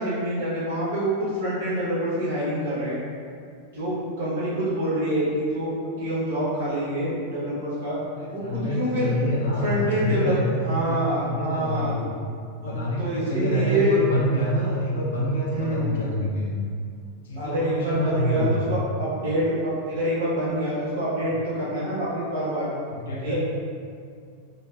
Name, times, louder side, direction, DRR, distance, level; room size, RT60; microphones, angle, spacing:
voice 1, 0.0-3.0 3.7-8.0 8.3-9.1 9.6-11.9 12.6-14.0 15.5-16.0 17.3-22.7 23.2-23.4, right 1 dB, 55° right, -9 dB, 1.0 m, -26 dB
voice 2, 8.2-12.1 12.6-16.6 17.2-18.7 22.9-23.3, equal, 60° left, -3 dB, 0.5 m, -26 dB
2.5 x 2.1 x 2.3 m, 2.2 s
figure-of-eight pair, 90°, 0 cm